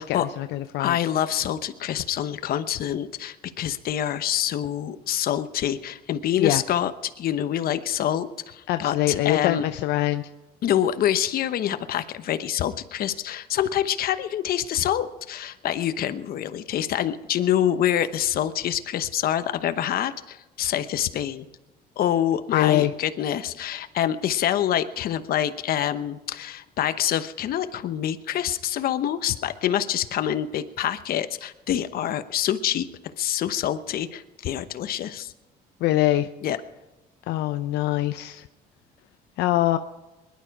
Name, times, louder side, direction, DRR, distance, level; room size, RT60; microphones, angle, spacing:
voice 1, 0.0-1.0 6.4-6.6 8.7-10.3 22.5-22.9 35.8-36.3 37.3-38.5 39.4-39.8, left 14 dB, 80° left, 9 dB, 0.6 m, -23 dB
voice 2, 0.8-9.6 10.6-21.5 22.0-35.3 36.4-36.6, left 10 dB, 60° left, 11 dB, 1.0 m, -26 dB
21.0 x 11.5 x 4.8 m, 1.1 s
cardioid pair, 110°, 17 cm